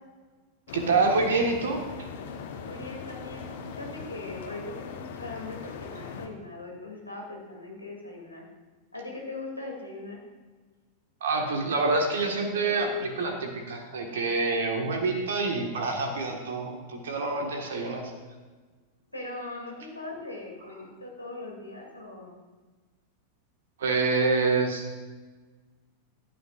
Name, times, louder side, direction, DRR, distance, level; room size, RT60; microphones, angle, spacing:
sound 1, 0.7-6.3, left 6 dB, 55° left, 1.2 m, -40 dB
voice 1, 0.7-1.9 11.2-18.1 23.8-25.0, right 3 dB, 60° right, 3 dB, 1.7 m, -27 dB
voice 2, 2.6-8.5 8.9-10.2 19.1-22.3, left 2 dB, 85° left, -1 dB, 2.8 m, -40 dB
15.5 x 11.5 x 2.6 m, 1.3 s
figure-of-eight pair, 90°, 0 cm